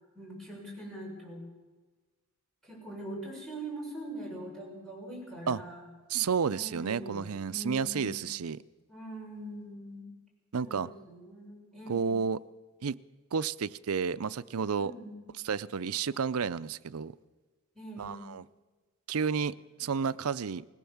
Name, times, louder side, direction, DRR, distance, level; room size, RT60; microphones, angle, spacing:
voice 1, 0.1-1.4 2.6-5.9 6.5-8.2 8.9-10.1 10.6-12.1 14.8-15.2 17.8-18.3, right 1 dB, ahead, 6.8 m, -42 dB
voice 2, 6.1-8.6 10.5-10.9 11.9-12.4 12.8-13.0 13.3-14.9 15.4-17.1 18.0-18.4 19.1-20.6, right 6 dB, 85° right, 0.6 m, -31 dB
20.5 x 17.5 x 7.2 m
head